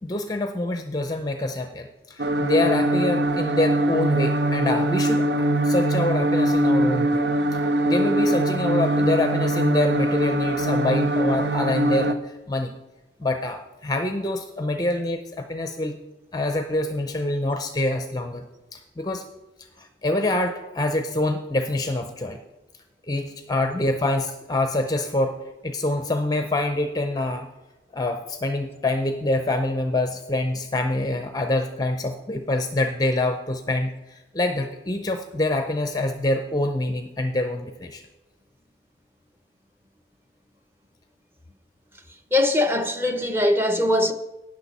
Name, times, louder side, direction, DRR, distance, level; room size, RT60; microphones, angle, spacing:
voice 1, 0.0-7.2 7.5-12.7 13.2-16.0 16.3-18.5 18.7-19.2 19.8-22.4 23.1-27.5 27.9-38.0, left 2 dB, 20° left, 0.5 m, -26 dB
sound 1, 2.2-12.1, right 1 dB, 80° right, 0.7 m, -22 dB
voice 2, 42.3-44.1, left 1 dB, 15° right, 0.8 m, -21 dB
17.5 x 6.4 x 4.2 m
head